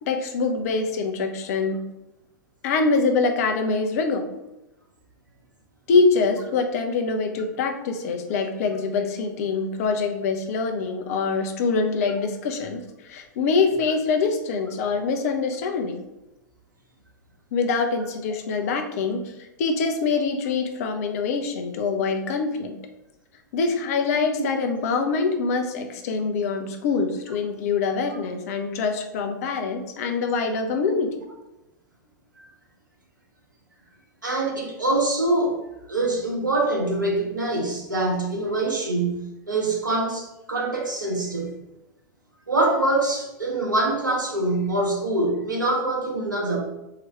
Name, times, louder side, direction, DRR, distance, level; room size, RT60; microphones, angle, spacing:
voice 1, 0.0-1.8 2.6-4.2 5.9-16.0 17.5-19.3 19.6-22.8 23.5-31.1, left 4 dB, 50° left, 6 dB, 0.8 m, -24 dB
voice 2, 34.2-35.6 35.9-41.5 42.5-46.6, right 2 dB, 85° right, -1 dB, 1.3 m, -24 dB
3.8 x 3.1 x 4.5 m, 0.92 s
figure-of-eight pair, 100°, 10 cm